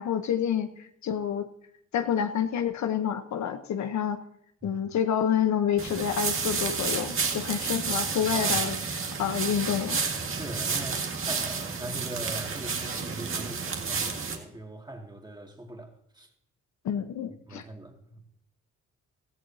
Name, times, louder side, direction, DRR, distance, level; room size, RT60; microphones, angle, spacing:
voice 1, 0.0-1.5 1.9-4.2 4.6-8.8 9.2-10.0 16.8-17.6, left 8 dB, 65° left, 1.1 m, -28 dB
sound 1, 5.8-14.4, right 5 dB, 45° right, 2.0 m, -30 dB
voice 2, 10.3-16.3 17.5-18.2, right 1 dB, 15° right, 2.3 m, -41 dB
16.5 x 14.0 x 2.8 m
cardioid pair, 90°, 30 cm